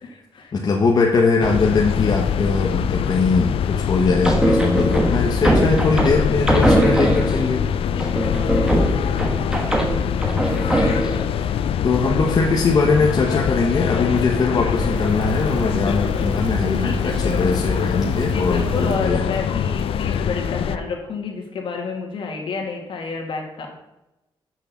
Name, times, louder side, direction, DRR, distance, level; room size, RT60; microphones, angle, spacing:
voice 1, 0.0-0.5 8.0-9.5 16.8-17.2 18.1-23.7, left 4 dB, 65° left, 1 dB, 2.1 m, -30 dB
voice 2, 0.5-7.6 10.9-11.0 11.3-11.5 11.8-19.2, left 4 dB, 45° left, 0 dB, 0.9 m, -21 dB
sound 1, 1.4-20.8, left 8 dB, 90° left, 0.4 m, -23 dB
sound 2, 4.2-7.5 8.0-11.2, right 1 dB, 10° right, 1.3 m, -20 dB
sound 3, 14.8-19.0 19.9-20.0, right 4 dB, 50° right, 1.1 m, -31 dB
6.3 x 6.2 x 7.0 m, 0.95 s
wide cardioid pair, 150°, 9 cm